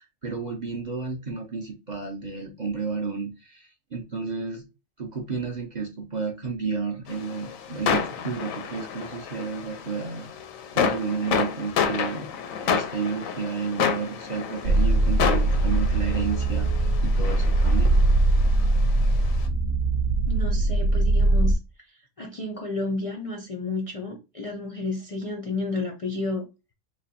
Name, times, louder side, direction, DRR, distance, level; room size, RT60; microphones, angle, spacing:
voice 1, 0.0-4.6 5.0-10.3 10.7-12.3 12.6-16.7 17.0-17.9, right 5 dB, 50° right, 0.6 m, -31 dB
sound 1, 7.1-19.4, left 7 dB, 85° left, 1.0 m, -30 dB
sound 2, 14.6-21.5, right 2 dB, 65° right, 1.0 m, -21 dB
voice 2, 20.3-21.6 22.2-26.5, left 2 dB, 50° left, 0.4 m, -31 dB
3.2 x 2.2 x 4.0 m
omnidirectional pair, 1.4 m